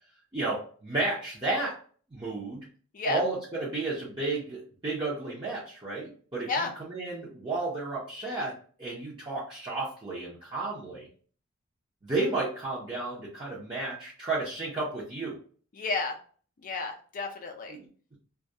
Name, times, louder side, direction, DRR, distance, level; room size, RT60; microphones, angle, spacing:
voice 1, 0.3-1.8 2.1-2.6 3.0-11.1 12.0-15.4 17.7-18.2, right 2 dB, 20° right, -8 dB, 0.6 m, -32 dB
voice 2, 15.7-16.2 16.6-17.8, left 3 dB, 35° left, 3 dB, 0.4 m, -31 dB
2.3 x 2.2 x 2.6 m, 0.43 s
head